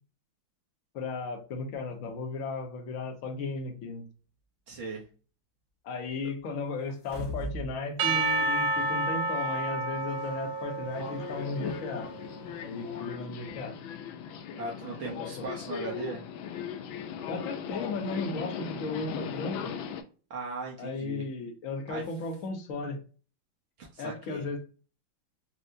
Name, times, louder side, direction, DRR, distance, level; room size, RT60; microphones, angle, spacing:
voice 1, 0.9-4.1 5.8-12.1 12.6-13.8 15.0-15.5 17.3-19.7 20.8-23.0 24.0-24.6, left 3 dB, 55° left, 3 dB, 1.0 m, -35 dB
voice 2, 4.7-5.0 13.5-13.6 14.6-16.2 20.3-21.2 21.9-22.0 23.8-24.5, right 4 dB, 60° right, -2 dB, 0.8 m, -38 dB
sound 1, 6.9-7.7 8.1-8.2, right 1 dB, 20° left, 0.7 m, -36 dB
Percussion / Church bell, 8.0-12.2, right 2 dB, 75° right, 1.2 m, -30 dB
Subway metro underground, 10.9-20.0, left 8 dB, 85° left, 1.3 m, -38 dB
4.5 x 2.0 x 2.5 m, 0.37 s
omnidirectional pair, 2.1 m